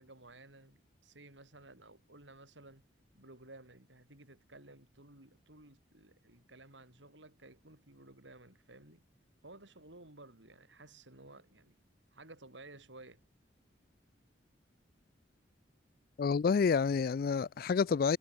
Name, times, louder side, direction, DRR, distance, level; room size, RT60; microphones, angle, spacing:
voice 1, 0.0-2.9 3.1-9.1 9.4-11.8 12.1-13.2, right 2 dB, 85° right, 5.3 m, -55 dB
voice 2, 16.2-18.2, left 5 dB, 55° left, 0.3 m, -28 dB
head